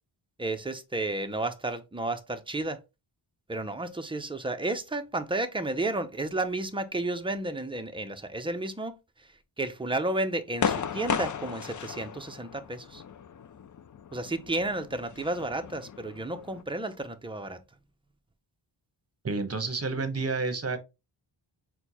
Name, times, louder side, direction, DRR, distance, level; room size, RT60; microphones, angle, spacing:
voice 1, 0.4-2.8 3.5-9.3 9.6-13.0 14.1-17.6, right 2 dB, 10° right, 0.5 m, -32 dB
sound 1, 10.6-16.6, left 7 dB, 45° left, 0.4 m, -35 dB
voice 2, 19.2-20.8, right 3 dB, 35° right, 0.9 m, -30 dB
4.4 x 2.2 x 4.0 m
wide cardioid pair, 95°, 46 cm